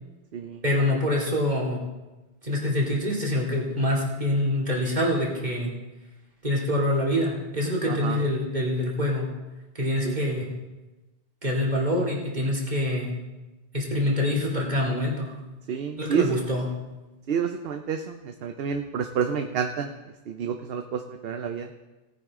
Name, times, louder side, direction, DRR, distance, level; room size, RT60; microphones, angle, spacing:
voice 1, 0.6-1.8 2.4-5.7 6.4-9.3 9.7-10.6 11.4-13.1 13.7-15.4 16.0-16.7, left 1 dB, 45° right, -3 dB, 2.8 m, -25 dB
voice 2, 7.9-8.2 10.0-10.2 15.7-16.4 17.3-19.9 20.3-21.7, right 7 dB, 70° right, 6 dB, 0.9 m, -29 dB
17.5 x 10.0 x 3.7 m, 1.1 s
omnidirectional pair, 1.0 m